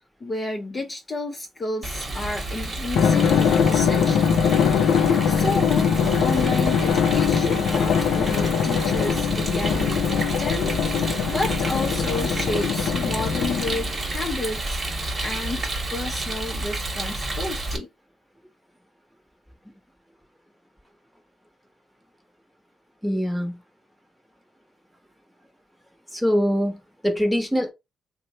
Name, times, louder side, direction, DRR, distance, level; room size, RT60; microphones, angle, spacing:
voice 1, 0.2-4.3 4.9-10.7 11.0-17.9, left 2 dB, 30° left, 0.6 m, -31 dB
Rain, 1.8-17.8, right 2 dB, 35° right, 1.1 m, -30 dB
Drum, 3.0-14.0, left 7 dB, 80° left, 0.4 m, -22 dB
voice 2, 23.0-23.6 26.1-27.7, equal, ahead, 1.0 m, -23 dB
3.1 x 2.1 x 4.0 m
cardioid pair, 90°, 0 cm